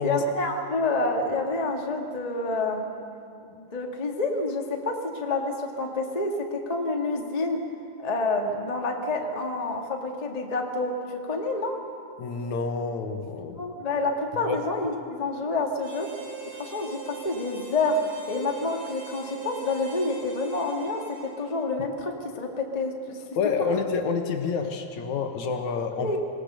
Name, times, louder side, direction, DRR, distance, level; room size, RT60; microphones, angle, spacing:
voice 1, 0.0-2.8 3.5-7.6 8.0-11.8 13.5-16.1 16.5-18.0 18.3-23.2 23.6-23.7 26.0-26.2, left 2 dB, 20° left, 1 dB, 0.9 m, -28 dB
voice 2, 12.2-13.6 14.5-14.6 23.4-26.2, left 5 dB, 65° left, 5 dB, 2.5 m, -28 dB
Harmonica, 15.8-21.7, right 5 dB, 80° right, 5.7 m, -42 dB
26.5 x 18.5 x 6.8 m, 2.6 s
omnidirectional pair, 3.7 m